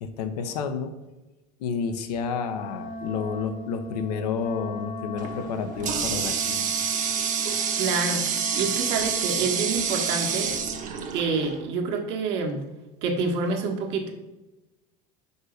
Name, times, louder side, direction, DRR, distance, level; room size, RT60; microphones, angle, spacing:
voice 1, 0.0-0.9 1.6-6.7, left 6 dB, 90° left, 8 dB, 0.9 m, -30 dB
Wind instrument woodwind instrument, 2.5-10.9, equal, 40° left, 1.2 m, -38 dB
Water tap faucet, 5.2-11.7, right 7 dB, 40° right, 1.1 m, -28 dB
sound 1, 5.3-6.6 8.3-8.6 9.2-9.9, left 5 dB, 70° left, 1.1 m, -44 dB
voice 2, 7.8-8.3 8.5-10.5 11.1-12.6 13.0-14.1, right 4 dB, 65° right, 1 dB, 1.6 m, -27 dB
5.5 x 4.8 x 6.4 m, 1.1 s
supercardioid pair, 105°, 20 cm